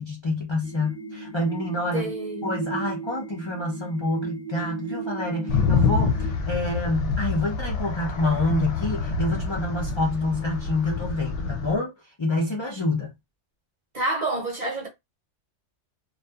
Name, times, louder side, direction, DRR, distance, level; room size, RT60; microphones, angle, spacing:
voice 1, 0.0-2.1 2.4-11.9 12.2-13.1, left 2 dB, 45° left, 0.3 m, -27 dB
sound 1, 0.6-6.3, right 5 dB, 70° right, 0.9 m, -36 dB
voice 2, 1.9-2.6 13.9-14.9, right 2 dB, 40° right, 0.7 m, -28 dB
sound 2, 5.5-11.8, left 5 dB, 70° left, 0.9 m, -26 dB
2.6 x 2.3 x 2.3 m
omnidirectional pair, 1.3 m